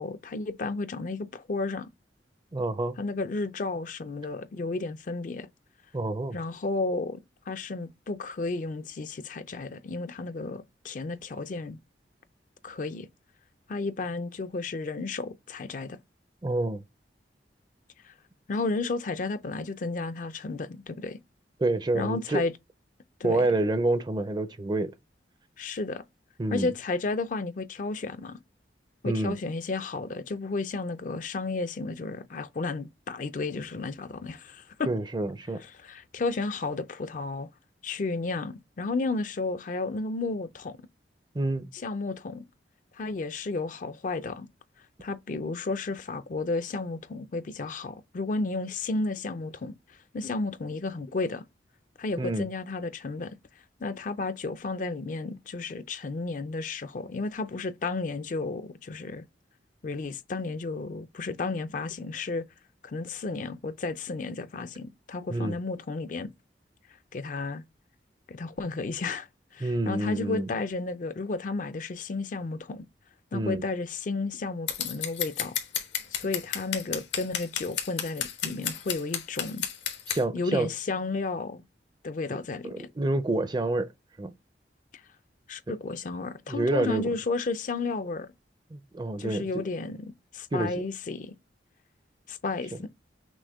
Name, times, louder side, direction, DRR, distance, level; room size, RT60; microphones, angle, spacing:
voice 1, 0.0-1.9 3.0-5.5 6.3-11.8 12.6-13.1 13.7-16.0 18.0-18.1 18.5-21.2 21.9-22.5 23.2-23.5 25.6-26.0 26.5-28.4 29.0-34.9 35.8-37.5 37.8-40.9 41.7-42.5 42.9-44.5 45.0-51.4 52.0-53.4 53.8-59.3 59.8-62.5 62.8-66.3 67.1-67.6 68.3-69.3 69.5-72.9 73.3-75.5 76.1-79.6 80.3-81.6 82.0-82.9 85.5-88.3 89.2-91.3 92.3-92.9, left 3 dB, 45° left, 0.4 m, -32 dB
voice 2, 2.5-3.0 5.9-6.4 16.4-16.8 21.6-22.4 23.2-24.9 26.4-26.7 29.0-29.4 34.9-35.6 41.3-41.7 52.2-52.5 65.3-65.6 69.6-70.5 73.3-73.6 80.1-80.7 82.6-83.9 84.2-84.3 85.7-85.8 86.5-87.1 88.7-89.6 90.5-90.7, right 2 dB, 25° right, 0.4 m, -28 dB
Scissors, 74.7-80.2, left 9 dB, 85° left, 1.2 m, -31 dB
6.1 x 2.1 x 3.5 m
head